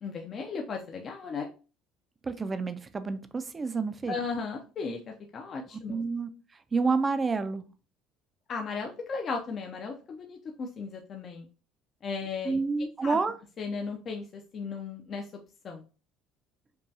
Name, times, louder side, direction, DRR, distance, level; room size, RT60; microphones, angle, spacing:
voice 1, 0.0-1.5 4.1-6.0 8.5-11.5 12.0-12.6 13.0-13.2 13.6-15.8, left 4 dB, 35° left, 2 dB, 0.5 m, -36 dB
voice 2, 2.2-4.2 5.9-6.3 6.7-7.6 12.4-13.4, right 4 dB, 20° right, 11 dB, 0.4 m, -29 dB
5.4 x 2.3 x 2.7 m, 0.35 s
cardioid pair, 135°, 0 cm